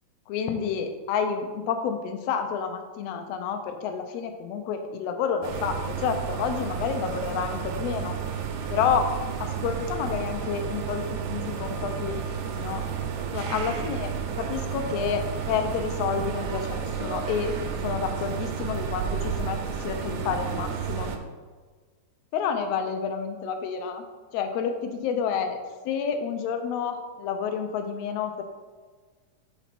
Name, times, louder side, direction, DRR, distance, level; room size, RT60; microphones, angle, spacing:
voice 1, 0.3-8.1 8.7-9.1 9.4-12.8 13.3-17.6 17.8-19.6 19.8-21.1 22.3-24.0 24.3-25.6 25.8-28.4, left 6 dB, 85° left, 6 dB, 1.4 m, -29 dB
sound 1, 5.4-21.2, right 7 dB, 80° right, 1.9 m, -31 dB
5.5 x 4.0 x 5.9 m, 1.4 s
omnidirectional pair, 3.5 m